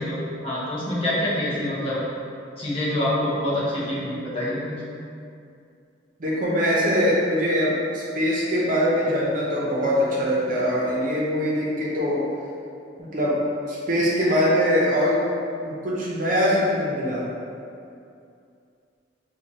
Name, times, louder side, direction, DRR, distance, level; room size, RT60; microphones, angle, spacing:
voice 1, 0.0-2.0 2.6-4.8, left 1 dB, 30° left, -9 dB, 0.8 m, -26 dB
voice 2, 6.2-12.2 13.0-13.4 13.7-15.2 15.6-17.2, equal, 45° right, -5 dB, 0.7 m, -22 dB
4.5 x 2.3 x 2.7 m, 2.5 s
head